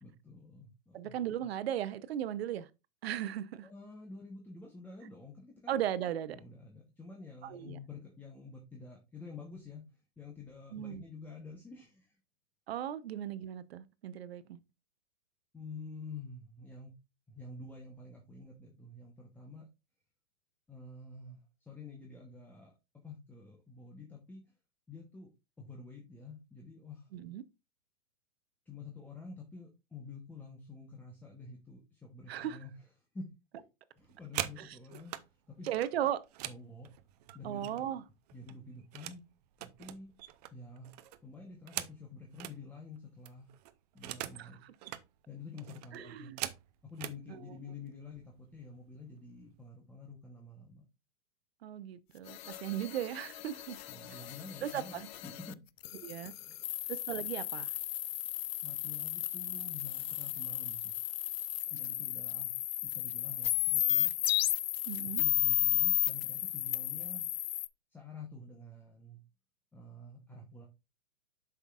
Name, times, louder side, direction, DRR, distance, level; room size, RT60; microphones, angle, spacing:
voice 1, 0.0-1.2 3.6-5.8 6.3-12.2 15.5-16.9 17.3-19.7 20.7-24.4 24.9-25.3 25.6-27.1 28.7-32.9 33.1-33.3 33.5-33.6 34.0-35.1 35.5-35.7 36.4-36.9 37.3-37.9 38.3-39.2 39.6-40.1 40.5-40.9 41.2-43.5 43.9-44.6 45.3-46.3 46.8-50.8 53.9-55.6 56.4-56.7 58.6-60.9 61.7-64.1 65.0-67.3 67.9-69.2 69.7-70.7, left 3 dB, 5° left, 0.9 m, -49 dB
voice 2, 0.9-2.7 3.0-3.7 5.7-6.4 7.4-7.8 10.7-11.0 12.7-14.6 27.1-27.4 32.3-32.6 34.6-34.7 35.6-36.2 37.4-38.0 44.4-44.7 45.9-46.4 47.3-47.5 51.6-53.8 54.6-55.1 56.0-56.3 56.9-57.7 64.9-65.2, right 11 dB, 60° right, 0.8 m, -37 dB
sound 1, 34.0-35.3 35.7-38.0 38.3-39.2 39.5-42.6 43.0-43.1 43.2-44.5 44.7-45.1 45.6-47.2 48.0-48.2 48.5-48.9 49.2-49.7, right 14 dB, 35° right, 0.6 m, -43 dB
sound 2, 52.3-55.5 55.8-67.7, left 14 dB, 60° left, 0.5 m, -34 dB
7.9 x 5.9 x 2.4 m
hypercardioid pair, 140°, 36 cm